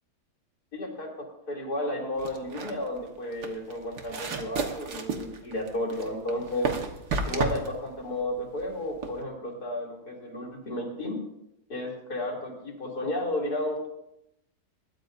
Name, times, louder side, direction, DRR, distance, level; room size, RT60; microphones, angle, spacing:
voice 1, 0.7-6.8 7.3-11.2 11.7-13.9, left 1 dB, 75° left, -1 dB, 3.6 m, -33 dB
sound 1, 2.2-9.2, right 4 dB, 85° right, 1.9 m, -33 dB
20.5 x 14.5 x 2.7 m, 0.83 s
omnidirectional pair, 1.7 m